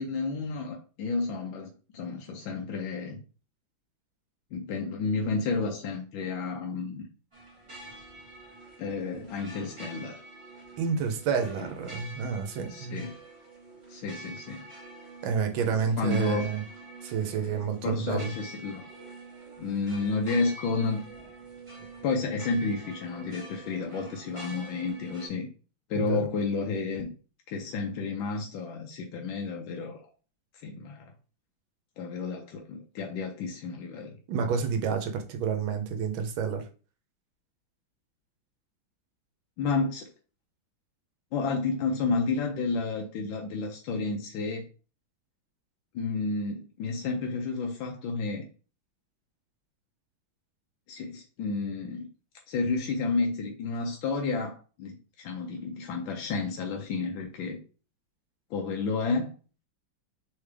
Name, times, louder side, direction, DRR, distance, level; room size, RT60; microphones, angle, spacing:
voice 1, 0.0-3.2 4.5-7.0 8.8-10.2 12.7-13.2 13.9-14.6 16.0-16.5 17.8-18.9 19.6-21.0 22.0-25.5 25.9-27.1 27.5-30.1 30.6-31.1 32.0-34.2 39.6-40.1 41.3-44.7 45.9-48.5 50.9-52.1 52.5-57.6 58.5-59.3, left 4 dB, 80° left, 2 dB, 1.4 m, -31 dB
sound 1, 7.3-25.3, right 2 dB, 25° right, 0.6 m, -46 dB
voice 2, 10.8-13.0 15.2-16.6 17.0-18.3 25.9-26.2 34.3-36.6, right 6 dB, 85° right, 6 dB, 1.5 m, -29 dB
4.0 x 3.4 x 3.2 m, 0.37 s
omnidirectional pair, 2.2 m